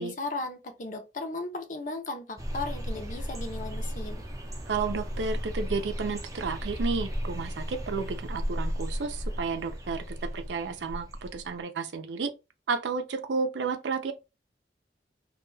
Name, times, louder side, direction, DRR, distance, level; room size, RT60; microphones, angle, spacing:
voice 1, 0.0-4.2, left 2 dB, 45° left, 0.6 m, -36 dB
sound 1, 2.4-11.5, equal, 20° right, 0.5 m, -35 dB
voice 2, 4.7-12.3 12.7-14.1, right 4 dB, 85° right, 0.5 m, -32 dB
2.2 x 2.2 x 3.1 m
head